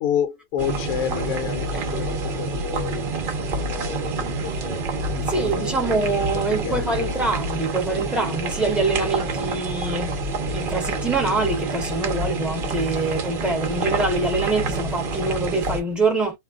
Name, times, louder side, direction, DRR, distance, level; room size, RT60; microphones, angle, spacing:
voice 1, 0.0-3.1 3.7-4.8 5.2-7.1, left 9 dB, 75° left, 1.0 m, -30 dB
sound 1, 0.6-15.8, right 3 dB, 55° right, 0.6 m, -27 dB
voice 2, 5.3-10.2 10.5-16.4, right 3 dB, ahead, 0.6 m, -24 dB
2.5 x 2.2 x 3.5 m
omnidirectional pair, 1.6 m